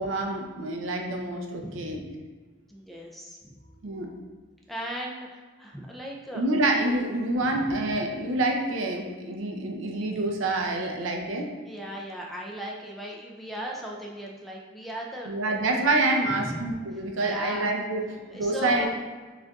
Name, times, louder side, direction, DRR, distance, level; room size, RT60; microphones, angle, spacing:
voice 1, 0.0-2.0 3.8-4.1 6.3-11.5 15.3-18.0 18.3-18.9, right 2 dB, 75° right, 2 dB, 0.5 m, -27 dB
voice 2, 1.6-2.0 2.7-3.4 4.7-6.4 7.4-7.8 11.6-15.6 16.3-16.7 17.2-17.7 18.3-18.9, equal, ahead, -2 dB, 0.3 m, -37 dB
6.1 x 2.5 x 2.3 m, 1.3 s
head